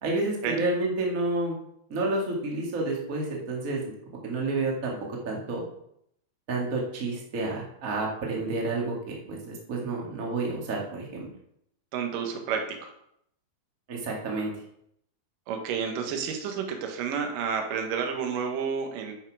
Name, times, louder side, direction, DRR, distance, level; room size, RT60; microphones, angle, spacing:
voice 1, 0.0-1.6 1.9-3.8 4.2-4.9 5.2-5.6 6.5-11.3 13.9-14.5, right 2 dB, 35° right, -2 dB, 1.4 m, -30 dB
voice 2, 11.9-12.9 15.5-19.1, right 6 dB, 65° right, 4 dB, 2.6 m, -30 dB
10.5 x 5.7 x 4.8 m, 0.73 s
omnidirectional pair, 4.6 m